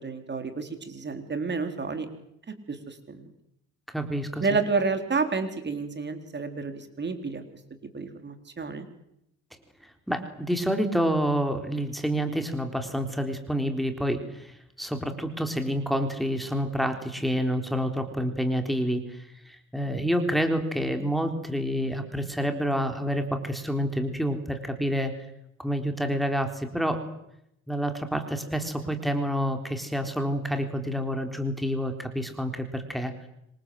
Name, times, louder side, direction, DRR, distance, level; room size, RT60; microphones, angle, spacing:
voice 1, 0.0-2.1 2.7-3.3 4.4-7.4 7.9-8.9, right 4 dB, 35° right, 7 dB, 4.2 m, -30 dB
voice 2, 3.9-4.4 10.1-25.1 25.6-27.0 27.7-33.1, equal, ahead, 5 dB, 4.2 m, -28 dB
27.0 x 25.5 x 7.9 m, 0.81 s
cardioid pair, 90°, 30 cm